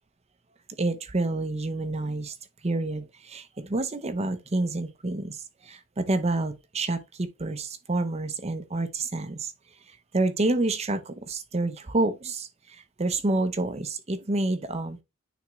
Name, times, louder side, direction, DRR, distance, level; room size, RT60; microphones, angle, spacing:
voice 1, 0.8-2.4 2.6-9.5 9.9-15.0, right 2 dB, 30° right, 0.7 m, -28 dB
9.2 x 3.6 x 3.1 m
head